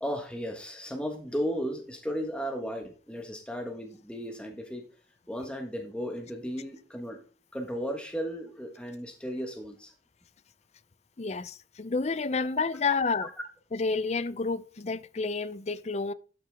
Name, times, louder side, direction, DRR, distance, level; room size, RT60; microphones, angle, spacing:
voice 1, 0.0-4.8 5.3-7.2 7.5-9.9 13.2-13.3, equal, 5° left, 1.4 m, -35 dB
voice 2, 11.2-13.3 13.7-16.1, left 4 dB, 35° left, 0.5 m, -30 dB
12.5 x 6.0 x 3.5 m
head